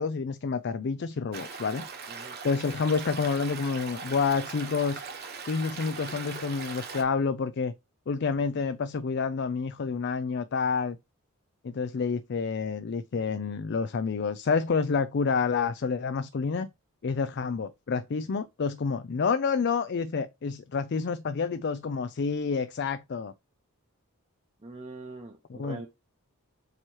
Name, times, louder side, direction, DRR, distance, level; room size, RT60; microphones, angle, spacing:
voice 1, 0.0-1.9 2.4-5.0 5.4-7.7 8.1-11.0 11.6-16.7 17.0-23.3 25.5-25.8, left 5 dB, 50° left, 0.4 m, -29 dB
Stream, 1.3-7.0, right 5 dB, 45° right, 1.2 m, -40 dB
voice 2, 24.6-25.9, right 2 dB, 30° right, 0.8 m, -42 dB
7.8 x 3.0 x 4.6 m
head